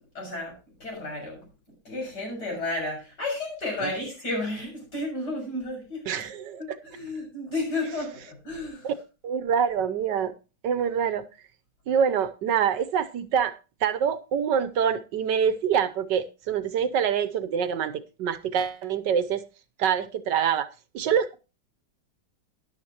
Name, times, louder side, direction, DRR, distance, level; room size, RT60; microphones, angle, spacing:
voice 1, 0.1-0.5 0.8-1.4 1.9-6.0 6.6-8.9, left 2 dB, 60° left, 7.6 m, -32 dB
voice 2, 6.1-6.8 8.8-8.9 9.2-10.3 10.6-11.2 11.9-13.6 13.8-19.4 19.8-20.7 20.9-21.4, right 7 dB, 75° right, 1.4 m, -25 dB
13.0 x 11.0 x 2.9 m
omnidirectional pair, 2.0 m